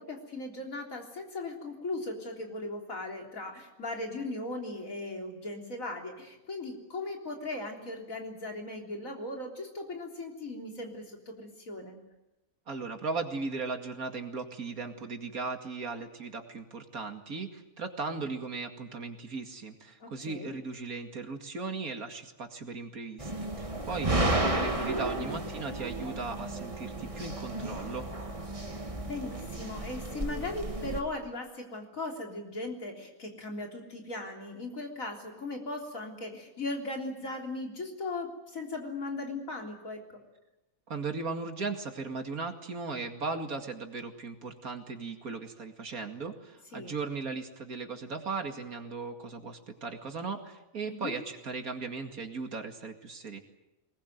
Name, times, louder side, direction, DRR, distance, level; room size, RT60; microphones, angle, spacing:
voice 1, 0.0-12.0 20.0-20.5 25.2-25.5 29.0-40.0 46.7-46.9 50.8-51.1, left 2 dB, 65° left, 2 dB, 4.0 m, -38 dB
voice 2, 12.7-23.3 23.6-28.1 40.9-53.4, right 4 dB, 80° right, 5 dB, 2.7 m, -37 dB
sound 1, 23.2-31.0, right 2 dB, 25° right, 2.1 m, -33 dB
22.0 x 20.5 x 9.4 m, 0.96 s
omnidirectional pair, 1.5 m